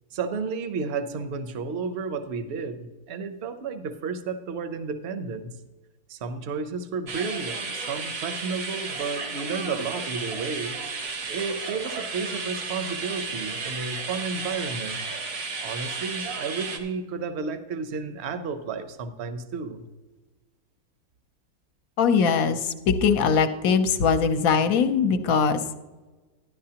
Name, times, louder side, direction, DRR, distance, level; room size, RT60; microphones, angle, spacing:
voice 1, 0.1-5.5 6.1-10.8 11.3-15.1 15.6-19.8, right 4 dB, 55° right, 10 dB, 0.9 m, -32 dB
sound 1, 7.1-16.8, right 4 dB, 80° right, 1.7 m, -33 dB
voice 2, 22.0-25.6, left 6 dB, 65° left, 9 dB, 1.1 m, -21 dB
12.0 x 11.0 x 2.9 m, 1.2 s
omnidirectional pair, 1.6 m